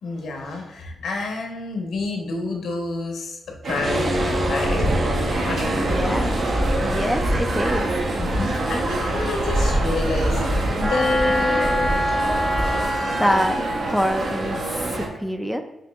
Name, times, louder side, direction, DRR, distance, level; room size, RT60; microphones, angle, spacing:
voice 1, 0.0-3.4 3.6-4.9 5.4-6.3 6.8-7.2 8.2-11.9, left 3 dB, 80° left, 2 dB, 0.9 m, -28 dB
sound 1, 3.6-15.1, right 2 dB, 65° right, 0.8 m, -27 dB
sound 2, 3.8-12.8, equal, 35° right, 0.7 m, -26 dB
voice 2, 5.8-6.4 6.8-8.0 13.2-15.6, equal, ahead, 6 dB, 0.3 m, -25 dB
Wind instrument woodwind instrument, 10.8-14.7, equal, 20° right, 1.0 m, -26 dB
5.9 x 2.8 x 2.3 m, 0.96 s
wide cardioid pair, 120°, 0 cm